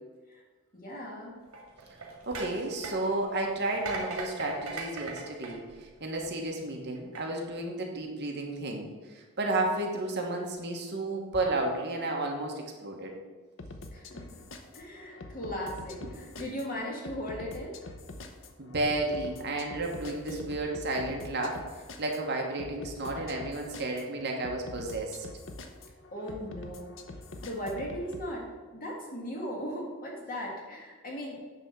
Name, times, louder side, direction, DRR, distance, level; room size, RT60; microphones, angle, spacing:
voice 1, 0.7-1.4 13.9-14.4 14.7-17.9 20.3-20.4 26.1-26.9 27.4-31.4, equal, 40° left, -2 dB, 2.0 m, -38 dB
sound 1, 1.5-6.4 7.0-7.2, right 3 dB, 80° right, 2.0 m, -40 dB
voice 2, 2.3-13.1 18.6-21.6 22.0-25.3, right 2 dB, 50° right, 1 dB, 1.3 m, -32 dB
sound 2, 13.6-28.3, left 2 dB, 55° left, 0.8 m, -45 dB
9.6 x 3.5 x 6.6 m, 1.4 s
head